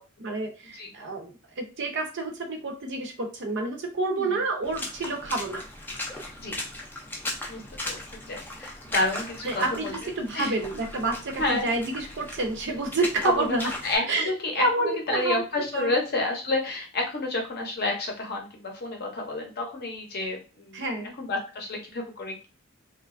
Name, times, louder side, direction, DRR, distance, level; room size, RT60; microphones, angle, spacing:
voice 1, 0.2-5.6 9.4-9.9 10.2-13.7 14.1-14.3 14.6-15.4 15.7-15.9 20.7-21.2, right 2 dB, 55° right, 3 dB, 0.6 m, -28 dB
Water / Splash splatter, 4.6-14.0, left 2 dB, 10° left, 0.4 m, -37 dB
voice 2, 7.5-10.0 10.3-10.5 11.4-11.7 13.2-13.6 13.8-20.8 21.2-22.5, left 2 dB, 45° left, 2 dB, 0.6 m, -30 dB
3.0 x 2.2 x 2.4 m, 0.34 s
head